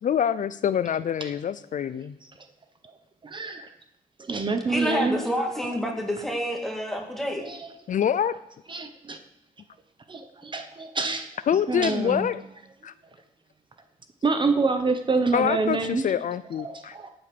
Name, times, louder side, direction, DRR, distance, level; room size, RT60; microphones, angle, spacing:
voice 1, 0.0-2.2 7.9-8.3 11.5-12.4 12.8-12.9 15.3-17.0, left 8 dB, 60° left, 15 dB, 0.5 m, -25 dB
voice 2, 3.2-3.7 4.3-5.2 7.4-7.7 8.7-9.2 10.1-11.3 11.7-12.3 14.2-16.0 16.6-17.1, right 4 dB, 35° right, 8 dB, 1.1 m, -26 dB
voice 3, 4.7-7.4, equal, ahead, 1 dB, 2.6 m, -28 dB
18.0 x 7.9 x 6.9 m, 0.80 s
wide cardioid pair, 150°, 15 cm